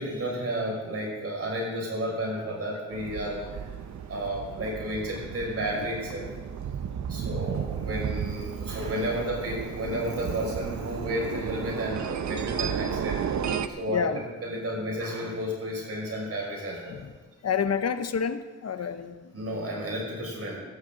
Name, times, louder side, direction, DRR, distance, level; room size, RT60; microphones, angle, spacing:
voice 1, 0.0-3.7 4.1-6.3 7.0-13.2 13.7-14.0 14.4-17.0 19.3-20.6, equal, 55° right, -2 dB, 6.0 m, -32 dB
sound 1, 2.9-13.7, right 7 dB, 70° right, 0.8 m, -33 dB
voice 2, 13.9-14.2 16.9-17.1 17.4-19.3, left 7 dB, 60° left, 10 dB, 0.8 m, -29 dB
16.0 x 15.5 x 3.9 m, 1.3 s
wide cardioid pair, 120°, 29 cm